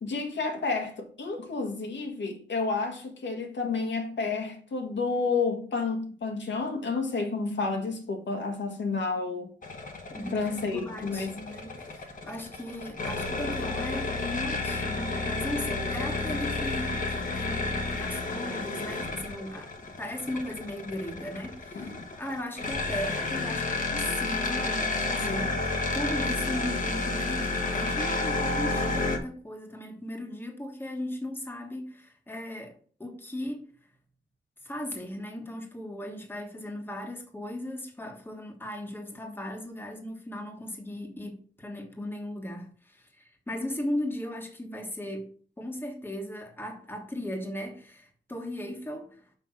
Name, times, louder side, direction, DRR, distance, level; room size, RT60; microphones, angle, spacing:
voice 1, 0.0-9.5 10.3-11.3 21.7-21.9, left 4 dB, 75° left, 1.6 m, -30 dB
sound 1, 9.6-29.2, left 3 dB, 45° left, 1.2 m, -31 dB
voice 2, 10.1-19.7 20.0-21.9 22.2-25.6 25.9-33.7 34.6-45.3 45.6-49.3, left 1 dB, 10° left, 1.3 m, -37 dB
5.7 x 5.5 x 5.9 m
wide cardioid pair, 175°, 19 cm